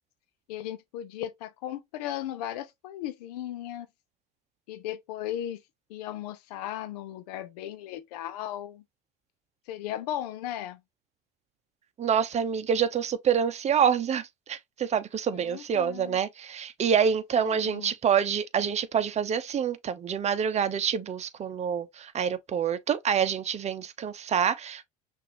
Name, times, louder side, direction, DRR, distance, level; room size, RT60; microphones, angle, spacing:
voice 1, 0.5-3.9 4.7-5.6 5.9-8.8 9.7-10.8 15.3-16.2 17.4-17.9, left 12 dB, 80° left, 0.8 m, -36 dB
voice 2, 12.0-24.8, right 7 dB, 35° right, 0.8 m, -27 dB
5.9 x 2.7 x 2.9 m
hypercardioid pair, 85°, 20 cm